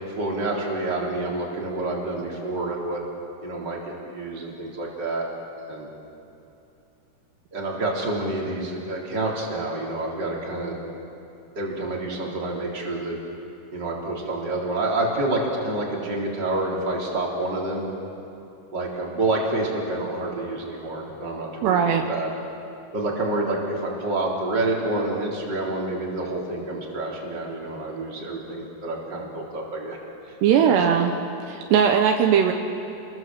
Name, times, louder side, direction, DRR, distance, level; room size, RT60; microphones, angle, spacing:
voice 1, 0.1-3.0 3.4-5.3 5.7-5.9 7.5-10.8 11.5-13.2 13.7-17.8 18.7-22.3 22.9-30.0 30.3-30.8, right 2 dB, 25° right, -2 dB, 3.8 m, -28 dB
voice 2, 21.6-22.0 30.4-31.1 31.5-32.5, right 8 dB, 75° right, 4 dB, 3.0 m, -19 dB
29.5 x 21.0 x 7.6 m, 2.8 s
omnidirectional pair, 5.1 m